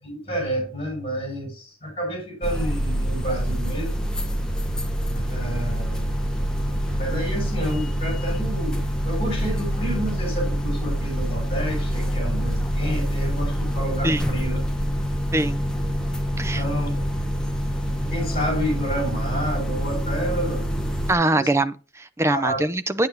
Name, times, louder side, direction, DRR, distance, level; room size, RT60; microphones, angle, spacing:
voice 1, 0.0-4.0 5.1-6.0 7.0-14.6 16.3-17.0 18.1-20.7 21.3-21.5 22.3-22.6, equal, 30° left, 5.3 m, -30 dB
sound 1, 2.4-21.1, equal, 5° left, 1.1 m, -26 dB
voice 2, 15.3-15.6 16.4-16.6 21.1-23.1, right 2 dB, 15° right, 0.5 m, -23 dB
9.3 x 8.7 x 2.7 m
head